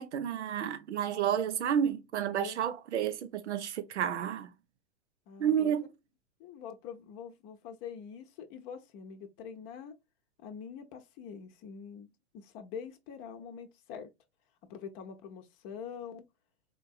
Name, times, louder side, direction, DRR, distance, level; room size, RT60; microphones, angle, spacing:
voice 1, 0.0-4.5 5.4-5.9, right 9 dB, 90° right, 0.6 m, -31 dB
voice 2, 5.3-5.8 6.4-10.0 10.4-12.1 12.3-14.1 14.7-16.3, left 7 dB, 40° left, 0.7 m, -45 dB
4.5 x 2.6 x 2.4 m
hypercardioid pair, 115°, 33 cm